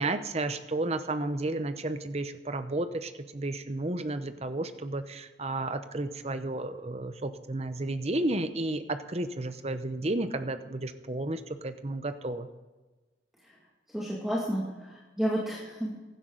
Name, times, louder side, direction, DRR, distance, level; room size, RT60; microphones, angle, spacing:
voice 1, 0.0-12.5, right 2 dB, 35° right, 10 dB, 0.8 m, -32 dB
voice 2, 13.9-16.0, equal, ahead, -5 dB, 2.2 m, -31 dB
16.0 x 12.0 x 3.9 m, 1.2 s
head